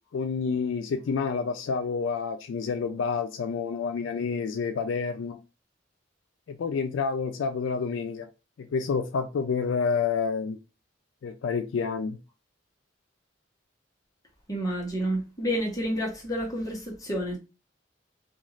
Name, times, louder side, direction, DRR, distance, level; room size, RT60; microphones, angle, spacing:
voice 1, 0.1-5.4 6.5-8.3 8.6-10.6 11.2-12.2, left 5 dB, 80° left, 0.3 m, -29 dB
voice 2, 14.5-17.4, equal, 20° left, 0.9 m, -29 dB
2.5 x 2.3 x 3.1 m
head